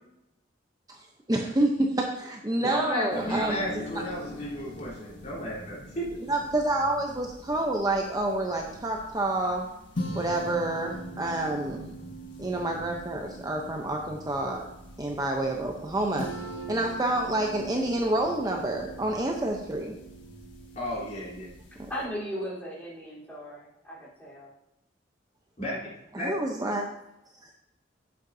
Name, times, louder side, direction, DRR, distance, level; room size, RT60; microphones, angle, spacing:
voice 1, 1.3-4.0 6.3-9.7 10.2-12.0 12.4-14.6 15.0-16.3 16.7-20.0 26.1-26.9, right 1 dB, 20° right, 1 dB, 0.7 m, -28 dB
voice 2, 2.6-6.2 20.8-21.5 25.6-25.8 26.1-26.3, equal, 40° left, -5 dB, 3.8 m, -33 dB
sound 1, 3.1-22.0, equal, 70° left, 1.5 m, -42 dB
voice 3, 21.9-24.5, equal, 10° left, -7 dB, 3.7 m, -37 dB
11.5 x 8.1 x 2.7 m, 0.87 s
head